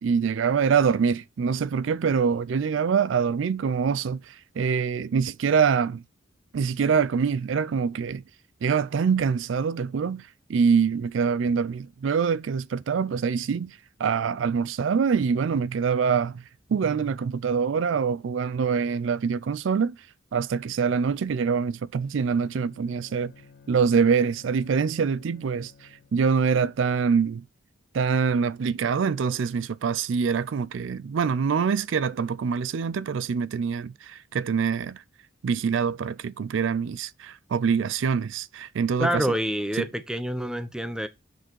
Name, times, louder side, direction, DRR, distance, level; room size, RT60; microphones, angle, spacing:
voice 1, 0.0-6.0 6.5-8.2 8.6-16.4 16.7-20.0 20.3-23.3 23.7-27.4 27.9-35.0 35.4-39.3, right 6 dB, 80° right, 0.4 m, -25 dB
Bowed string instrument, 22.3-26.4, left 4 dB, 55° left, 1.3 m, -54 dB
voice 2, 39.0-41.1, equal, 5° right, 0.9 m, -27 dB
7.6 x 6.3 x 4.5 m
head